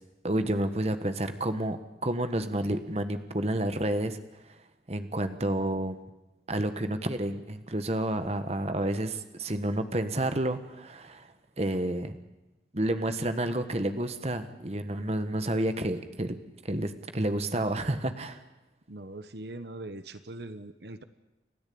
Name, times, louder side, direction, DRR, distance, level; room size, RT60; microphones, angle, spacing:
voice 1, 0.2-4.2 4.9-6.0 6.5-12.2 12.7-16.4 16.6-18.4, right 1 dB, 35° right, 9 dB, 1.4 m, -30 dB
voice 2, 18.9-21.0, right 2 dB, 70° right, 11 dB, 1.1 m, -41 dB
30.0 x 13.0 x 8.6 m, 1.0 s
head